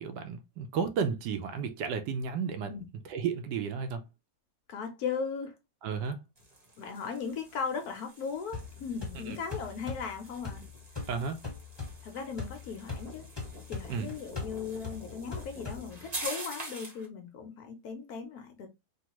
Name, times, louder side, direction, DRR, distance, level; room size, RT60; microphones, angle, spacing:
voice 1, 0.0-2.7 3.1-4.0 5.8-6.2 9.1-9.4 11.1-11.4 13.9-14.1, right 6 dB, 80° right, 1.2 m, -33 dB
voice 2, 4.7-5.5 6.8-10.6 12.0-13.3 13.7-18.7, left 6 dB, 70° left, 1.0 m, -37 dB
sound 1, 6.3-17.1, right 1 dB, 30° right, 0.9 m, -46 dB
sound 2, 8.5-16.3, left 4 dB, 15° left, 1.2 m, -42 dB
3.4 x 2.3 x 2.9 m
omnidirectional pair, 1.9 m